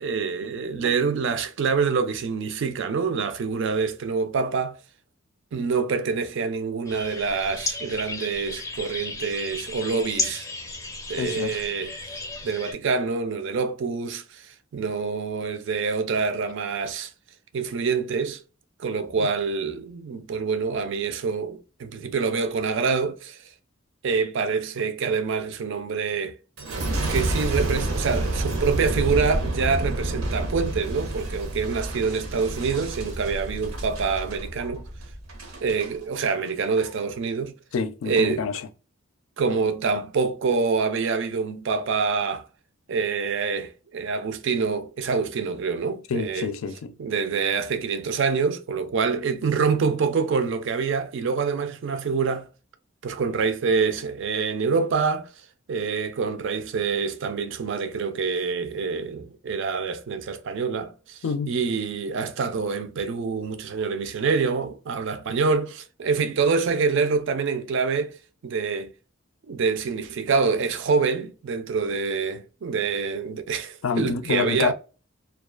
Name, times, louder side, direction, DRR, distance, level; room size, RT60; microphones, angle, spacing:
voice 1, 0.0-4.8 5.5-10.5 11.1-11.9 12.4-17.1 17.5-18.4 18.8-23.4 24.0-26.4 27.1-34.8 35.5-37.5 38.0-38.5 39.4-42.5 42.9-46.5 47.0-52.5 53.0-68.2 68.4-68.9 69.5-74.7, right 5 dB, 60° right, 0.4 m, -26 dB
sound 1, 6.9-12.7, left 3 dB, 15° left, 0.5 m, -34 dB
voice 2, 11.2-11.6 19.2-19.3 37.7-38.7 46.1-46.9 61.2-61.6 73.8-74.7, left 5 dB, 75° left, 0.4 m, -27 dB
Boom, 26.6-35.9 36.5-36.9, right 1 dB, 90° right, 0.7 m, -29 dB
2.3 x 2.3 x 2.3 m
head